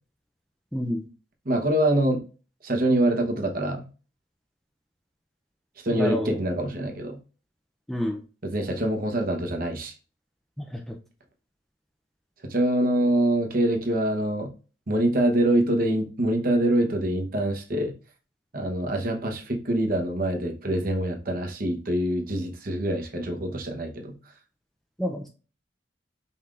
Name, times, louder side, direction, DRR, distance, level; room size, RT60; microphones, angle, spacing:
voice 1, 0.7-1.0 5.9-6.4 7.9-8.2 10.6-11.0 25.0-25.3, equal, ahead, 2 dB, 0.4 m, -29 dB
voice 2, 1.4-2.2 2.6-3.9 5.8-7.2 8.4-9.9 12.5-14.5 14.9-17.9 18.5-24.2, right 1 dB, 50° right, 3 dB, 1.0 m, -25 dB
5.6 x 3.5 x 2.4 m, 0.34 s
head